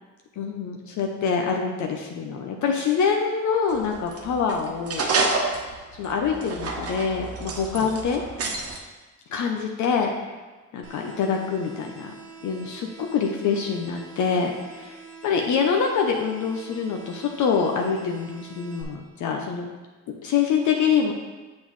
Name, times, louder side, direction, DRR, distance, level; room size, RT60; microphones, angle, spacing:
voice 1, 0.4-5.1 5.9-8.2 9.3-10.1 10.7-12.1 12.4-19.7 20.2-21.1, left 6 dB, 75° left, 2 dB, 0.7 m, -25 dB
sound 1, 3.7-8.8, right 3 dB, 50° right, 1.1 m, -29 dB
sound 2, 10.8-18.8, right 4 dB, 90° right, 1.1 m, -45 dB
7.4 x 6.1 x 3.1 m, 1.3 s
cardioid pair, 90°, 30 cm